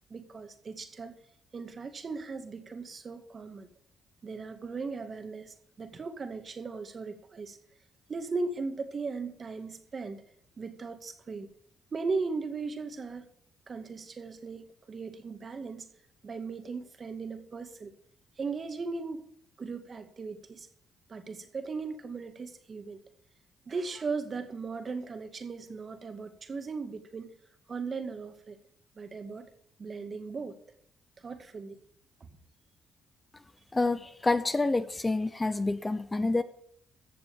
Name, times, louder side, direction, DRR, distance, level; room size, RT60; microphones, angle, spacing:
voice 1, 0.1-1.1 1.5-3.7 4.2-7.6 8.1-10.2 10.6-11.5 11.9-13.2 13.7-15.9 16.2-17.9 18.4-19.2 19.6-20.7 21.1-23.0 23.7-27.3 27.7-28.6 29.0-29.5 29.8-30.6 31.2-31.8, right 4 dB, 40° right, 2.0 m, -37 dB
voice 2, 33.7-36.4, left 2 dB, 20° left, 0.8 m, -28 dB
15.0 x 7.0 x 7.1 m
cardioid pair, 90°, 0 cm